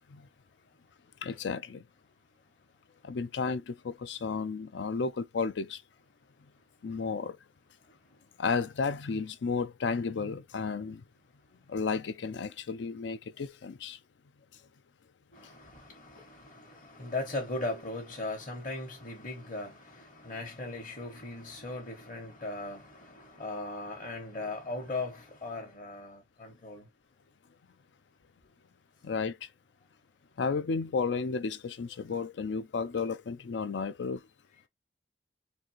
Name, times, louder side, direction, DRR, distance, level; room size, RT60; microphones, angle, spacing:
voice 1, 1.2-1.8 3.0-5.8 6.8-7.4 8.4-11.0 11.7-14.0 29.0-29.4 30.4-34.2, left 5 dB, 85° left, 0.5 m, -33 dB
voice 2, 15.3-26.9, left 2 dB, 45° left, 1.2 m, -38 dB
4.1 x 2.8 x 2.9 m
head